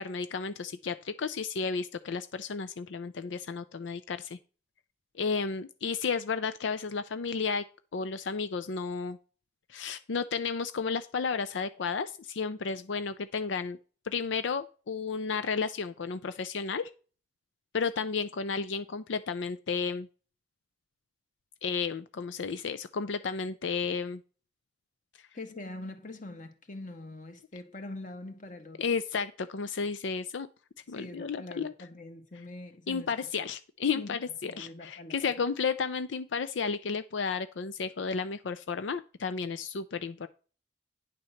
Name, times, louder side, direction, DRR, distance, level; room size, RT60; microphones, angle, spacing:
voice 1, 0.0-4.4 5.2-7.6 7.9-9.2 9.7-13.8 14.0-16.9 17.7-20.1 21.6-24.2 28.8-30.5 30.9-31.7 32.9-40.3, left 5 dB, 85° left, 0.5 m, -32 dB
voice 2, 25.3-28.8 30.9-33.1 33.9-35.3, left 2 dB, 45° left, 1.5 m, -43 dB
10.0 x 4.1 x 6.4 m
head